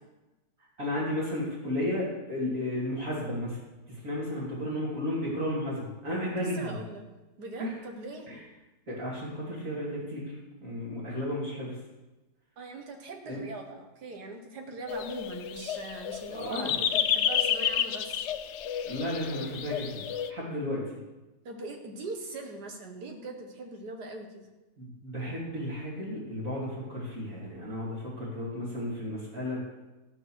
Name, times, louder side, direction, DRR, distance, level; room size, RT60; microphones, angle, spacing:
voice 1, 0.8-3.6 3.9-6.8 7.6-7.7 8.3-8.4 8.9-10.3 10.6-11.8 13.3-13.4 16.3-16.8 18.9-20.8 24.8-29.6, left 1 dB, 55° right, -7 dB, 3.5 m, -33 dB
voice 2, 6.4-7.0 7.4-8.3 12.6-18.2 21.5-24.5, right 2 dB, 85° right, 3 dB, 2.1 m, -41 dB
sound 1, 14.9-20.3, left 9 dB, 65° left, 0.7 m, -30 dB
14.0 x 7.1 x 6.4 m, 1.1 s
omnidirectional pair, 1.7 m